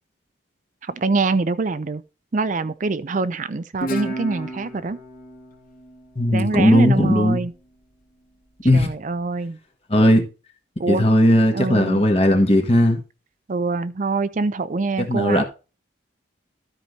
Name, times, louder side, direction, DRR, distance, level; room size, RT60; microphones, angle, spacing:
voice 1, 0.8-2.0 2.3-5.0 6.3-7.5 8.6-9.6 10.8-11.0 11.5-12.0 13.5-15.4, right 3 dB, 40° right, 0.5 m, -24 dB
Guitar, 3.8-7.0, right 1 dB, 45° left, 2.2 m, -33 dB
voice 2, 6.2-7.4 8.6-8.9 9.9-10.3 10.9-13.0 15.0-15.4, left 1 dB, 30° left, 1.5 m, -17 dB
13.0 x 4.8 x 4.1 m
head